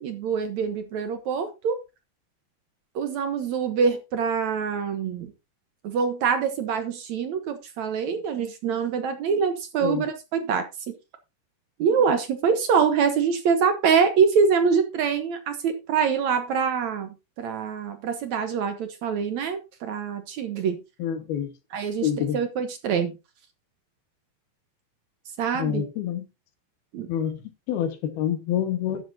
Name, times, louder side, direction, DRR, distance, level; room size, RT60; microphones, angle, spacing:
voice 1, 0.0-1.8 3.0-5.3 5.8-10.9 11.8-17.1 17.4-20.8 21.7-22.1 22.3-23.2 25.4-25.8 26.9-27.1, right 6 dB, 65° right, 1.9 m, -25 dB
voice 2, 21.0-21.5 22.0-22.4 25.5-26.3 27.1-27.4 27.7-29.0, left 9 dB, 75° left, 3.4 m, -27 dB
12.0 x 10.0 x 2.7 m
omnidirectional pair, 4.5 m